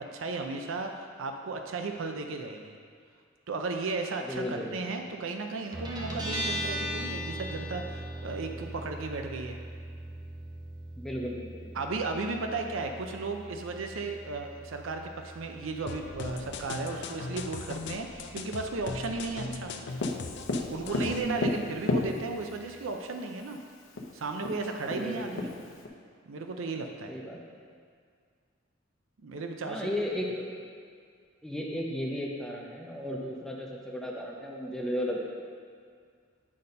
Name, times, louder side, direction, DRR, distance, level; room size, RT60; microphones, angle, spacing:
voice 1, 0.0-2.8 3.5-9.6 11.7-19.7 20.7-23.6 24.1-25.5 26.3-27.1 29.2-29.9, right 3 dB, 80° right, 4 dB, 0.5 m, -35 dB
voice 2, 4.2-4.8 11.0-11.8 19.4-19.5 21.1-21.4 24.9-25.4 27.1-27.4 29.7-30.4 31.4-35.2, equal, 5° left, -2 dB, 0.6 m, -35 dB
Guitar, 5.7-22.9, right 1 dB, 20° right, 0.9 m, -41 dB
sound 1, 15.9-21.2, left 4 dB, 60° left, 0.5 m, -39 dB
Tap, 20.0-22.6 23.6-23.7 24.0-24.1 24.4-25.9, left 2 dB, 80° left, 0.8 m, -31 dB
8.6 x 4.1 x 5.2 m, 2.1 s
head